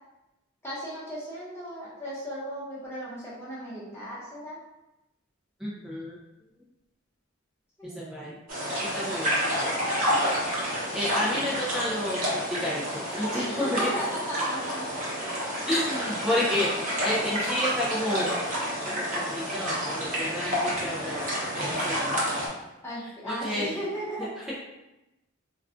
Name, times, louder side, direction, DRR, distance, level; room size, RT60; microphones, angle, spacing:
voice 1, 0.6-4.6 7.8-8.2 13.3-14.9 22.8-24.3, equal, 10° left, -8 dB, 0.9 m, -36 dB
voice 2, 5.6-6.2 7.8-8.3 8.8-9.8 10.9-13.9 15.7-18.3 18.8-21.3 21.6-22.2 23.2-23.8, left 1 dB, 5° right, -7 dB, 0.4 m, -31 dB
sound 1, 8.5-22.5, equal, 40° right, 0.9 m, -29 dB
2.3 x 2.3 x 3.6 m, 0.94 s
head